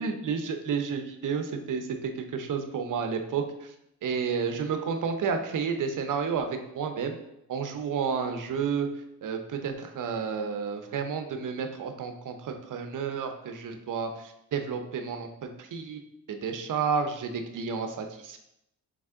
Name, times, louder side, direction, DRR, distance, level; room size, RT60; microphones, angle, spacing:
voice 1, 0.0-3.7 4.0-7.2 7.5-8.9 9.2-16.0 16.3-18.4, right 6 dB, 50° right, 6 dB, 0.6 m, -31 dB
3.5 x 3.3 x 3.6 m, 0.83 s
cardioid pair, 70°, 39 cm